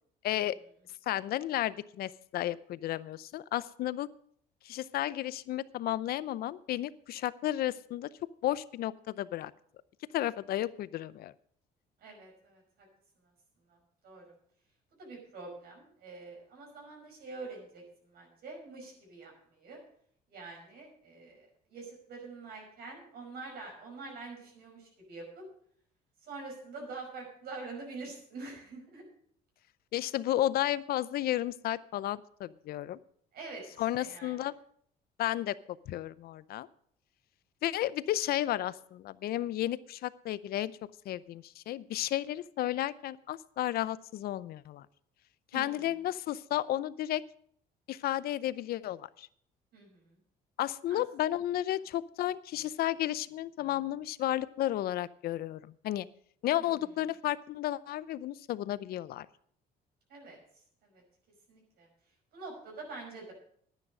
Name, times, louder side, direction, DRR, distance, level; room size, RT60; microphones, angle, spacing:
voice 1, 0.2-0.6 1.1-4.1 4.6-8.1 8.4-9.5 10.1-11.3 29.9-33.0 33.8-34.5 35.2-36.7 37.6-40.7 41.1-44.9 45.5-47.2 47.9-49.3 50.6-56.1 56.4-59.3, left 13 dB, 65° left, 17 dB, 0.6 m, -33 dB
voice 2, 12.0-12.9 13.7-13.8 14.0-14.2 14.9-19.8 20.3-25.4 26.2-29.0 33.3-34.3 45.5-45.7 49.7-50.2 50.9-51.0 56.6-56.8 60.1-60.4 60.8-61.0 61.5-61.9 62.3-63.3, right 3 dB, 65° right, 0 dB, 5.4 m, -46 dB
10.5 x 9.8 x 6.1 m, 0.64 s
cardioid pair, 110°, 17 cm